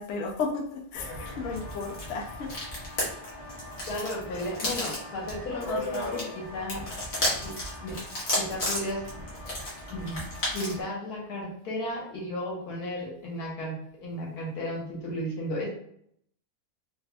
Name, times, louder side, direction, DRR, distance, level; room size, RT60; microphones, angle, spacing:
voice 1, 0.0-2.5 4.3-4.4, left 4 dB, 65° left, 1 dB, 0.9 m, -34 dB
sound 1, 0.9-10.8, left 1 dB, 45° left, 1.3 m, -34 dB
voice 2, 3.9-6.9 7.4-8.0 8.3-9.1 9.9-10.2 10.5-13.8 14.0-15.7, left 1 dB, 90° left, -2 dB, 1.5 m, -34 dB
4.2 x 2.6 x 2.2 m, 0.68 s
omnidirectional pair, 1.6 m